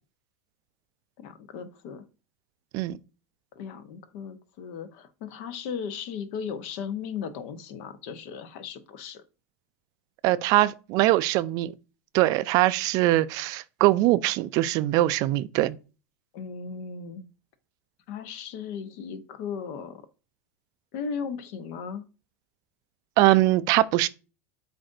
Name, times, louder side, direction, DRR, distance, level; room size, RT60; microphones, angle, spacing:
voice 1, 1.2-2.0 3.5-9.2 16.3-17.2 18.1-20.0 20.9-22.0, left 6 dB, 60° left, 0.8 m, -36 dB
voice 2, 10.2-11.7 12.1-15.8 23.2-24.1, right 16 dB, 50° right, 0.3 m, -22 dB
7.5 x 2.6 x 2.5 m
hypercardioid pair, 110°, 8 cm